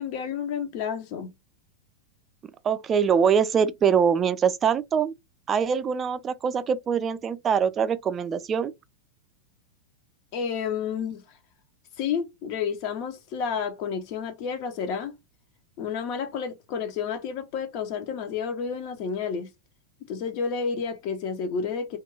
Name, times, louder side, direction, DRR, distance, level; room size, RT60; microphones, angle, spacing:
voice 1, 0.0-1.3 10.3-11.2 12.0-15.2 15.8-19.5 20.1-22.0, left 6 dB, 45° left, 0.4 m, -30 dB
voice 2, 2.6-5.1 5.5-8.7, right 7 dB, 25° right, 0.3 m, -23 dB
2.3 x 2.2 x 3.0 m
figure-of-eight pair, 90°, 0 cm